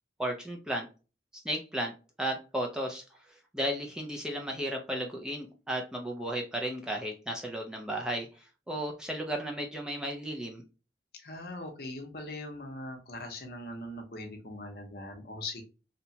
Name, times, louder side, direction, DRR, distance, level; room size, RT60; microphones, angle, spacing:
voice 1, 0.2-0.9 1.4-1.9 2.2-3.0 3.5-10.6, right 1 dB, 5° right, 1 dB, 0.3 m, -34 dB
voice 2, 11.2-15.6, left 1 dB, 60° left, 4 dB, 0.6 m, -41 dB
2.8 x 2.2 x 2.6 m, 0.33 s
head